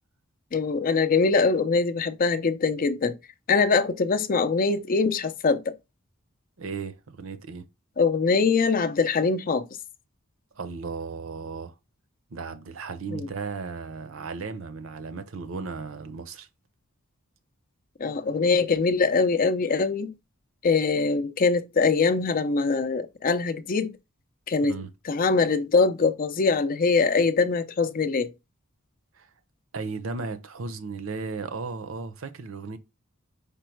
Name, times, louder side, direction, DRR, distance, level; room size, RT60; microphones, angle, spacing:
voice 1, 0.5-3.1 3.5-5.7 8.0-9.7 13.1-13.3 18.0-20.1 20.6-23.9 24.5-24.7 25.1-28.3, left 4 dB, 40° left, 0.5 m, -23 dB
voice 2, 6.6-7.6 10.5-11.7 12.3-16.5 24.6-24.9 29.1-29.3 29.7-32.8, right 4 dB, 65° right, 0.6 m, -35 dB
5.2 x 2.1 x 4.5 m
head